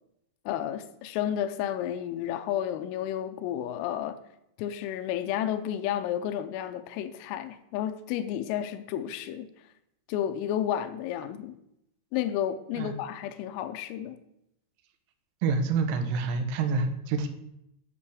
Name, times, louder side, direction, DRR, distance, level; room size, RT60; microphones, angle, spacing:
voice 1, 0.5-4.2 4.6-9.5 10.1-11.6 12.1-14.2, left 10 dB, 90° left, 9 dB, 3.3 m, -31 dB
voice 2, 15.4-17.3, right 4 dB, 75° right, 6 dB, 3.2 m, -27 dB
10.0 x 5.4 x 6.3 m, 0.80 s
omnidirectional pair, 5.9 m